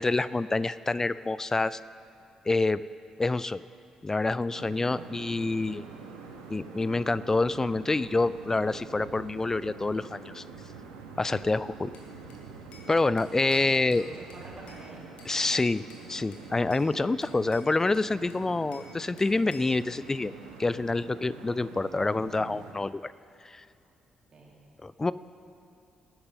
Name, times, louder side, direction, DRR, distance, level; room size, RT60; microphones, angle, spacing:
voice 1, 0.0-1.8 2.5-2.8 3.2-3.6 4.0-5.9 6.5-10.4 11.2-11.9 12.9-14.1 15.3-15.8 16.1-20.3 20.6-23.1 23.4-23.6 24.8-25.1, left 3 dB, 20° left, 17 dB, 0.3 m, -27 dB
sound 1, 4.5-22.7, right 5 dB, 75° right, 1.0 m, -46 dB
Bell / Glass, 11.9-12.9 13.2-14.9 15.2-16.1 16.3-16.9 17.2-18.9 19.2-19.8, left 4 dB, 60° left, 1.7 m, -52 dB
voice 2, 13.2-15.0 24.3-24.6 25.0-25.1, right 2 dB, 40° right, -3 dB, 3.0 m, -49 dB
19.0 x 9.4 x 3.9 m, 2.6 s
figure-of-eight pair, 40°, 2 cm